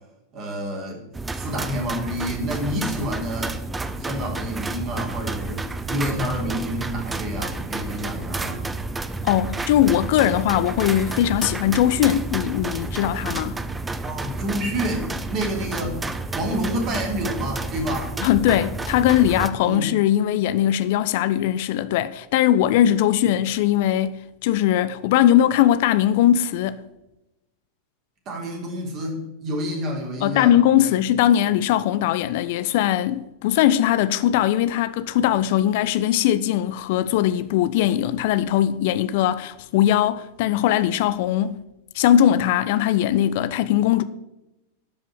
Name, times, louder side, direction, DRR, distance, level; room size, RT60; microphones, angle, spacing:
voice 1, 0.3-1.0 1.3-3.5 4.0-8.7 14.0-18.1 19.6-20.0 28.2-30.5 30.8-30.9, equal, 35° right, 3.5 m, -29 dB
sound 1, 1.1-19.5, right 3 dB, 10° right, 0.7 m, -30 dB
voice 2, 9.2-13.6 18.2-26.8 30.2-41.6 41.9-44.0, left 11 dB, 50° left, 0.5 m, -20 dB
12.0 x 5.5 x 8.5 m
figure-of-eight pair, 90°, 0 cm